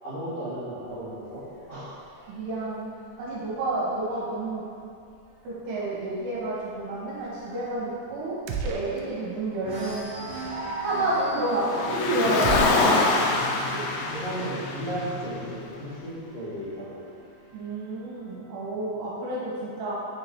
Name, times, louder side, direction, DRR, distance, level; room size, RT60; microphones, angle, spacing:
voice 1, 0.0-1.4 1.7-2.0 14.1-17.3, right 1 dB, 65° left, -14 dB, 1.6 m, -35 dB
sound 1, 0.8-4.4 4.9-5.2 5.4-5.5 5.9-9.2 9.6-16.1 17.0-18.0, right 1 dB, 55° right, 2.9 m, -40 dB
voice 2, 2.3-2.9 3.2-4.7 5.4-10.2 10.8-13.1 13.7-13.9 17.5-20.0, right 2 dB, 70° right, -7 dB, 2.8 m, -30 dB
sound 2, 8.5-9.4 9.6-9.8 12.4-13.7, right 6 dB, 90° right, 2.5 m, -33 dB
Car, 11.5-15.9, left 3 dB, 80° left, 3.0 m, -25 dB
8.5 x 3.9 x 4.4 m, 2.5 s
omnidirectional pair, 5.6 m